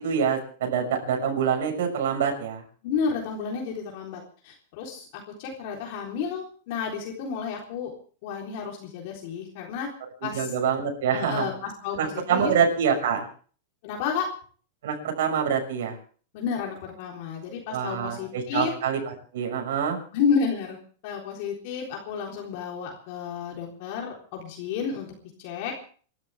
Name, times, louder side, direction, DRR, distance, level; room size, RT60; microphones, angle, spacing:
voice 1, 0.0-2.6 10.3-11.5 12.0-13.3 14.8-16.0 17.7-20.0, right 7 dB, 75° right, 3 dB, 6.0 m, -26 dB
voice 2, 2.8-5.1 5.4-7.9 8.2-9.9 10.2-10.5 11.1-12.5 13.8-14.3 16.3-18.7 20.1-25.1 25.4-25.7, left 6 dB, 50° left, -1 dB, 3.8 m, -31 dB
29.5 x 12.5 x 3.6 m, 0.43 s
supercardioid pair, 155°, 0 cm